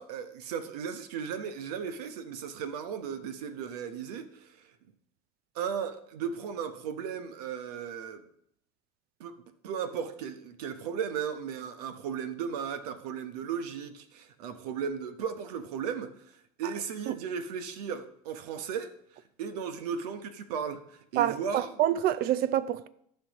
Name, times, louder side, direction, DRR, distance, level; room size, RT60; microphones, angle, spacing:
voice 1, 0.0-4.7 5.5-8.3 9.2-21.8, right 7 dB, 75° right, 1.0 m, -36 dB
voice 2, 21.2-22.9, right 12 dB, 50° right, 0.6 m, -27 dB
14.0 x 5.6 x 3.0 m
hypercardioid pair, 90°, 20 cm